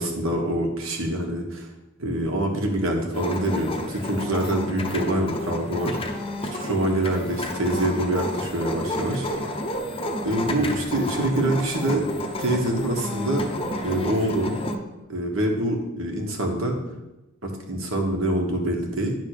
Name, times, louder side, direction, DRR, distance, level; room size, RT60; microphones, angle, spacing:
voice 1, 0.0-1.7 2.0-6.0 6.5-9.3 10.2-12.0 12.4-13.4 13.8-14.5 15.1-16.8 17.4-19.2, right 1 dB, 65° right, 1 dB, 1.4 m, -25 dB
sound 1, 3.1-14.8, left 1 dB, 25° left, 0.8 m, -30 dB
10.5 x 3.6 x 6.6 m, 1.0 s
head